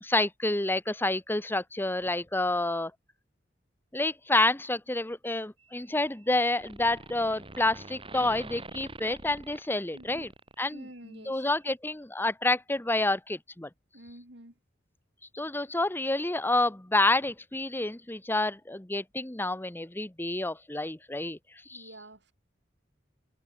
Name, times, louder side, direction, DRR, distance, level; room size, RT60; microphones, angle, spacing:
voice 1, 0.0-2.9 3.9-10.3 10.6-10.8 11.3-13.7 15.3-21.4 21.7-21.9, left 2 dB, 10° left, 1.0 m, -28 dB
sound 1, 5.6-6.3 6.5-11.0, right 2 dB, 30° right, 7.1 m, -45 dB
voice 2, 9.9-10.3 10.7-11.5 13.9-14.5 21.7-22.3, right 1 dB, 65° right, 7.6 m, -49 dB
head